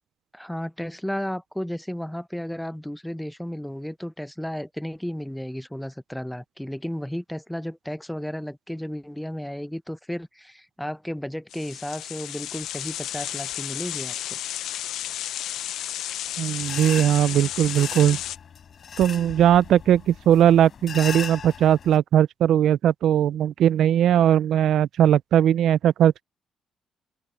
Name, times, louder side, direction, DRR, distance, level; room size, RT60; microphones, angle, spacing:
voice 1, 0.3-14.1, equal, 5° left, 0.7 m, -33 dB
sound 1, 11.5-18.4, left 12 dB, 80° left, 0.5 m, -32 dB
voice 2, 16.4-18.2 19.0-26.2, right 10 dB, 75° right, 0.4 m, -19 dB
sound 2, 16.6-22.0, left 7 dB, 55° left, 5.8 m, -38 dB
cardioid pair, 90°, 0 cm